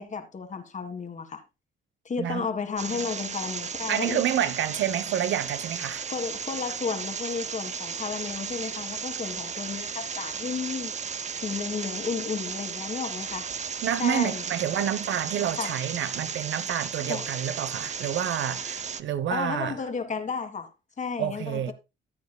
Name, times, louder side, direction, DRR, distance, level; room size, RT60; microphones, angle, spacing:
voice 1, 0.0-1.4 2.0-4.2 6.1-10.9 11.4-13.5 14.0-14.4 15.6-15.8 17.1-17.2 19.3-20.7 21.0-21.7, left 5 dB, 40° left, 1.7 m, -33 dB
sound 1, 2.8-19.0, right 6 dB, 35° right, 0.7 m, -35 dB
voice 2, 3.9-6.1 13.8-19.8 21.2-21.7, right 10 dB, 70° right, 1.0 m, -28 dB
14.5 x 8.5 x 2.2 m
cardioid pair, 90°, 20 cm